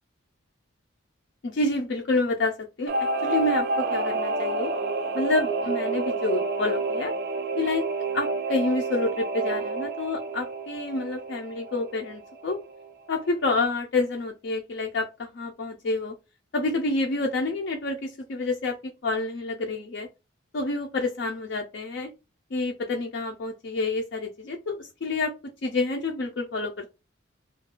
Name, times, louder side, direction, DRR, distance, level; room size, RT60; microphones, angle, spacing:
voice 1, 1.4-2.9 3.2-4.7 5.1-7.1 7.6-7.9 8.1-12.6 13.1-16.1 16.5-20.1 20.5-22.1 22.5-25.3 25.6-26.9, left 2 dB, 60° left, 0.4 m, -28 dB
Singing / Musical instrument, 2.9-12.9 13.2-13.3, right 3 dB, 50° right, 0.4 m, -29 dB
2.4 x 2.2 x 3.6 m
head